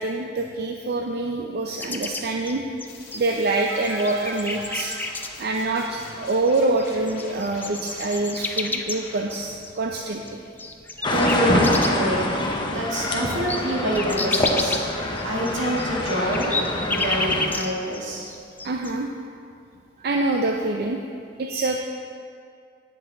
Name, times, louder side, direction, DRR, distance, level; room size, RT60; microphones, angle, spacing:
voice 1, 0.0-2.6 3.1-10.4 11.0-11.1 12.1-12.3 14.4-14.5 18.6-19.1 20.0-21.0 21.4-21.9, right 2 dB, 55° right, 2 dB, 0.5 m, -26 dB
sound 1, 1.8-3.5 3.8-5.3 6.5-6.6 6.8-12.1 12.5-12.6 12.9-18.0 18.3-18.9, left 3 dB, 10° left, 0.4 m, -30 dB
sound 2, 2.9-9.6, left 2 dB, 55° left, 2.1 m, -44 dB
sound 3, 11.0-17.5, left 2 dB, 25° left, 0.8 m, -26 dB
voice 2, 11.1-18.3, right 1 dB, 80° right, -4 dB, 2.0 m, -26 dB
10.0 x 7.6 x 4.1 m, 2.4 s
head